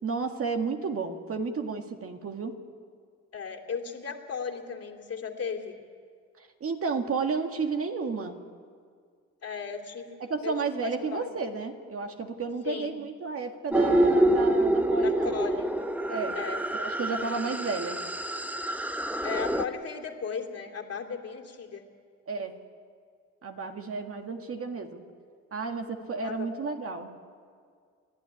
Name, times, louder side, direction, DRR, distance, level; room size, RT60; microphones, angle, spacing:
voice 1, 0.0-2.6 6.4-8.4 10.2-15.4 16.1-16.4 16.7-18.0 22.3-22.6 23.4-25.0 25.5-27.1, right 4 dB, 50° right, 5 dB, 1.9 m, -32 dB
voice 2, 3.3-5.8 9.4-11.3 12.7-13.0 15.0-15.7 16.3-16.6 19.2-21.8 26.2-26.8, left 6 dB, 55° left, 2 dB, 2.7 m, -36 dB
sound 1, 13.7-19.6, right 1 dB, 5° right, 0.9 m, -26 dB
29.5 x 11.5 x 9.8 m, 2.1 s
cardioid pair, 90°, 30 cm